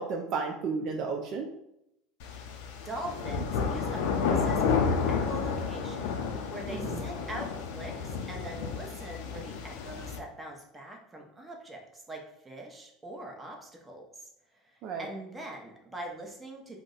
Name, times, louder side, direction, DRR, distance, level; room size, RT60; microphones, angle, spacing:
voice 1, 0.0-1.5 6.7-7.0 14.8-15.1, right 5 dB, 55° right, 2 dB, 0.4 m, -33 dB
sound 1, 2.2-10.2, left 5 dB, 70° left, 0.4 m, -31 dB
voice 2, 2.8-12.2 12.4-14.3 14.6-14.7 15.0-16.8, right 1 dB, 15° right, 1 dB, 0.8 m, -42 dB
2.5 x 2.1 x 3.8 m, 0.81 s
hypercardioid pair, 85°, 0 cm